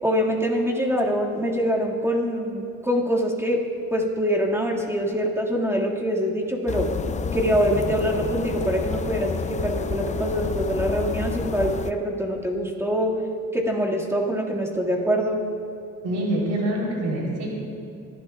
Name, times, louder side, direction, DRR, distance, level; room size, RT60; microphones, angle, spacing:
voice 1, 0.0-3.6 3.9-6.9 7.3-13.1 13.5-15.4, equal, 10° right, -2 dB, 1.9 m, -24 dB
sound 1, 6.7-11.9, left 6 dB, 25° left, 0.4 m, -29 dB
voice 2, 16.0-17.5, right 1 dB, 80° right, -2 dB, 3.5 m, -25 dB
27.0 x 11.5 x 2.3 m, 2.7 s
cardioid pair, 90°, 30 cm